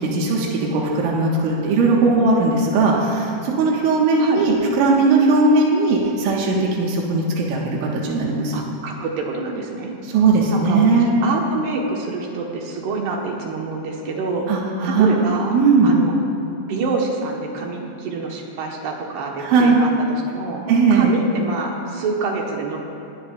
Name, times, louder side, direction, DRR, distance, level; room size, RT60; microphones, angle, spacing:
voice 1, 0.0-8.5 10.0-11.1 14.5-15.3 15.5-15.9 19.4-19.8 20.7-21.1, right 3 dB, 85° right, -2 dB, 3.8 m, -18 dB
voice 2, 8.5-9.9 10.5-14.5 14.8-15.6 15.8-16.2 16.7-20.7 20.9-22.8, right 4 dB, 70° right, 0 dB, 3.0 m, -27 dB
20.5 x 16.0 x 2.4 m, 3.0 s
omnidirectional pair, 5.5 m